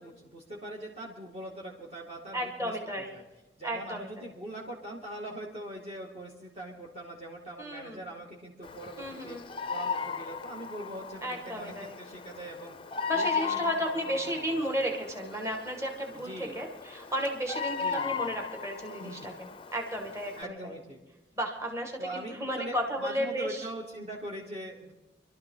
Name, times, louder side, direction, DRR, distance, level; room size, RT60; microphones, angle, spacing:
voice 1, 0.0-2.8 3.1-3.2 3.6-14.7 16.1-16.6 17.8-18.2 19.0-19.3 20.3-21.0 22.0-24.9, right 1 dB, 35° right, -4 dB, 2.4 m, -42 dB
voice 2, 2.3-3.2 3.6-4.3 7.6-8.0 9.0-9.4 11.2-12.0 13.1-19.3 19.7-20.7 21.4-23.7, equal, 15° right, 2 dB, 1.8 m, -33 dB
Bird vocalization bird call bird song, 8.6-20.4, left 5 dB, 30° left, 0.5 m, -37 dB
25.5 x 12.5 x 3.9 m, 1.1 s
head